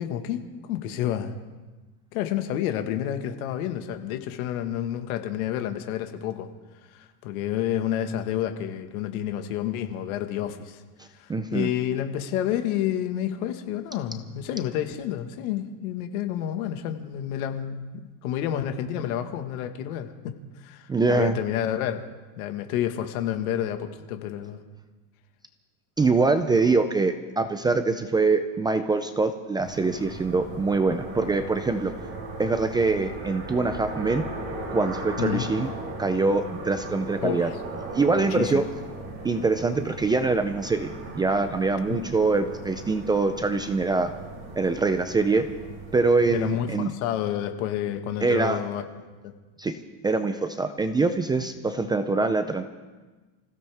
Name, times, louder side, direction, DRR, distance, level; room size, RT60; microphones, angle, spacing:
voice 1, 0.0-1.3 2.1-6.5 6.8-10.8 11.1-22.0 22.4-24.6 35.2-35.5 37.2-37.6 38.3-38.7 41.9-42.1 46.3-48.8 49.2-49.3, left 11 dB, 75° left, 7 dB, 1.7 m, -29 dB
voice 2, 11.3-11.7 20.9-21.4 26.0-31.9 32.4-34.3 34.7-35.7 36.0-37.5 37.9-38.6 39.2-44.1 44.6-45.5 45.9-46.9 48.2-48.6 49.6-49.8 50.0-52.6, right 3 dB, 10° right, 8 dB, 0.4 m, -24 dB
sound 1, 29.6-46.5, right 2 dB, 30° right, 5.1 m, -38 dB
25.5 x 16.0 x 3.5 m, 1.3 s
supercardioid pair, 145°, 43 cm